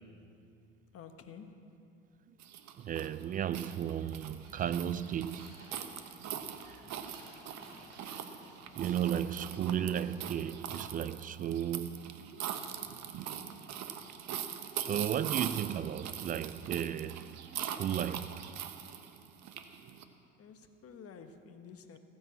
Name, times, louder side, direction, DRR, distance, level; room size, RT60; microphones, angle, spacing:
voice 1, 0.9-1.5 9.4-9.9 20.4-22.0, left 7 dB, 35° left, 1.4 m, -50 dB
sound 1, 2.4-20.0, right 9 dB, 45° right, 1.2 m, -42 dB
voice 2, 2.8-5.6 6.6-6.8 8.8-12.1 14.8-18.5, right 9 dB, 25° right, 0.3 m, -34 dB
sound 2, 4.4-10.3, right 1 dB, 75° right, 3.7 m, -56 dB
16.0 x 10.0 x 7.1 m
hypercardioid pair, 75°, 38 cm